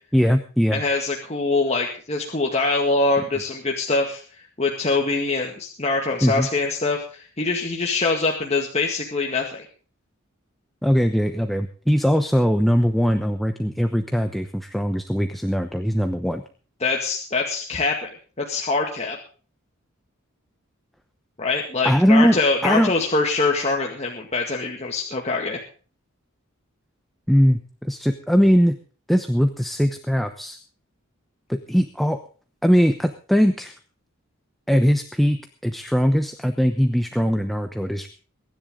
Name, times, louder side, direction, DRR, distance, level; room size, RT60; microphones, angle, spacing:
voice 1, 0.1-0.8 6.2-6.5 10.8-16.4 21.8-22.9 27.3-28.8 29.1-30.6 31.5-32.2 32.6-33.7 34.7-38.1, equal, ahead, 6 dB, 0.9 m, -20 dB
voice 2, 0.7-4.2 4.6-9.6 16.8-18.1 18.4-19.2 21.4-25.6, left 3 dB, 30° left, 0 dB, 2.0 m, -24 dB
23.0 x 10.5 x 3.8 m, 0.40 s
head